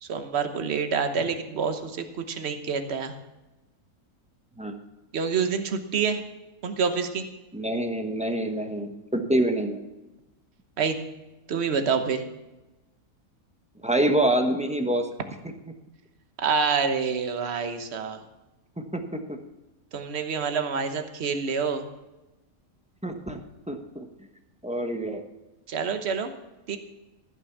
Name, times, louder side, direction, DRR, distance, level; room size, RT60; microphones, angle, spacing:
voice 1, 0.0-3.1 5.1-6.2 6.6-7.2 10.8-11.0 11.5-12.2 16.4-18.2 19.9-21.8 25.7-26.3 26.7-26.8, right 5 dB, 50° right, 7 dB, 1.3 m, -27 dB
voice 2, 7.5-9.8 13.8-15.1 18.9-19.4 23.0-23.4 23.7-24.1 24.6-25.2, right 1 dB, 5° right, 4 dB, 0.9 m, -26 dB
14.5 x 6.3 x 7.2 m, 1.0 s
omnidirectional pair, 1.5 m